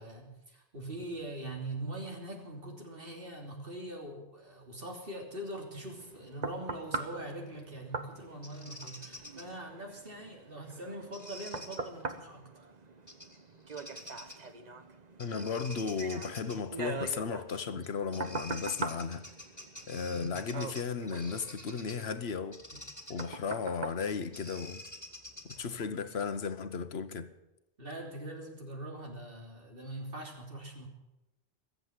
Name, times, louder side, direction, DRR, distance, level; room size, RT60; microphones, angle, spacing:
voice 1, 0.0-12.5 20.1-20.4 22.7-22.8 27.8-30.9, right 1 dB, 65° right, 3.4 m, -42 dB
sound 1, 5.7-25.0 25.5-25.6, right 4 dB, 45° right, 1.1 m, -43 dB
Bird vocalization bird call bird song, 8.4-9.4 11.1-11.8 13.1-13.4 13.7-14.5 15.2-16.6 17.8-17.9 18.1-22.1 22.5-25.8, left 1 dB, 15° left, 2.1 m, -48 dB
voice 2, 15.2-19.2 19.9-22.6 23.1-24.8 25.4-27.3, left 5 dB, 85° left, 1.3 m, -35 dB
21.5 x 7.9 x 8.2 m
omnidirectional pair, 1.0 m